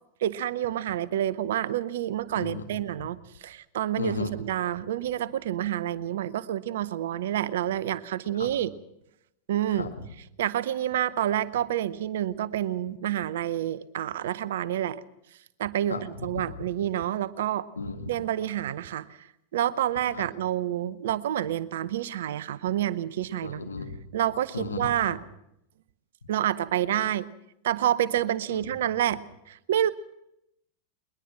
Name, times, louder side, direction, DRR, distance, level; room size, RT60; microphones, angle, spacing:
voice 1, 0.2-8.7 9.5-9.9 10.4-15.0 15.6-17.7 18.1-19.1 19.5-23.6 24.1-25.2 26.3-27.3 27.6-29.9, right 11 dB, 60° right, 18 dB, 0.7 m, -28 dB
voice 2, 4.0-4.3 8.4-8.5 9.7-9.9 15.9-16.4 17.8-18.0 20.1-20.3 23.4-24.0 24.5-25.2 28.5-28.8, left 4 dB, 75° left, 5 dB, 1.8 m, -34 dB
21.0 x 21.0 x 6.0 m, 0.83 s
figure-of-eight pair, 90°, 0 cm